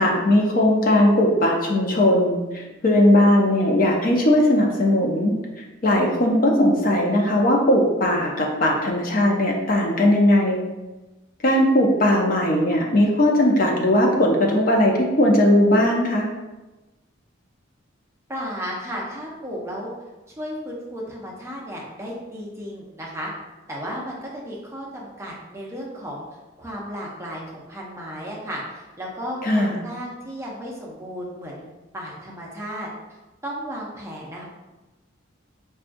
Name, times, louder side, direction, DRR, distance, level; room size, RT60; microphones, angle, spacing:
voice 1, 0.0-5.3 5.8-10.7 11.4-16.3 29.4-29.8, left 1 dB, 45° left, 0 dB, 0.5 m, -18 dB
voice 2, 18.3-19.9 20.4-23.3 23.7-26.2 26.6-31.6 31.9-34.4, equal, 15° right, -3 dB, 0.6 m, -34 dB
5.8 x 2.3 x 2.5 m, 1.1 s
head